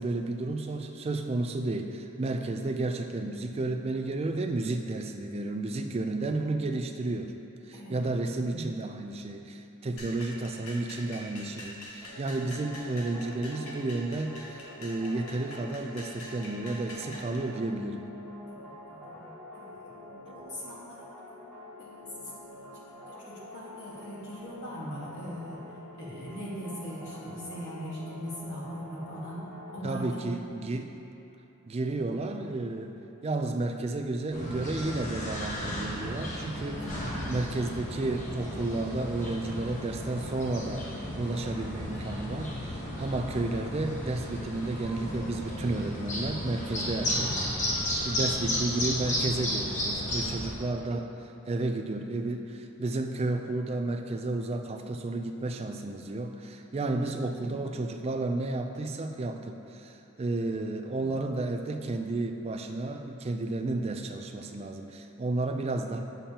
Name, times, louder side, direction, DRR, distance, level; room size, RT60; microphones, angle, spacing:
voice 1, 0.0-7.3 7.7-18.1 19.2-19.3 29.8-30.9 31.7-33.0 33.2-36.8 37.3-40.9 41.2-51.1 51.5-66.0, right 2 dB, 25° right, 5 dB, 0.3 m, -32 dB
sound 1, 10.0-17.4, left 1 dB, 75° left, 1.1 m, -45 dB
sound 2, 12.0-29.9, left 1 dB, ahead, 1.5 m, -47 dB
voice 2, 18.5-19.0 19.5-21.4 21.8-25.6 25.9-29.4 29.7-30.2 32.1-32.2 36.8-37.0 48.1-48.4 50.2-50.5, equal, 55° left, -6 dB, 1.5 m, -41 dB
sound 3, 34.3-50.5, left 1 dB, 35° left, 1.0 m, -34 dB
7.3 x 6.8 x 2.8 m, 3.0 s
head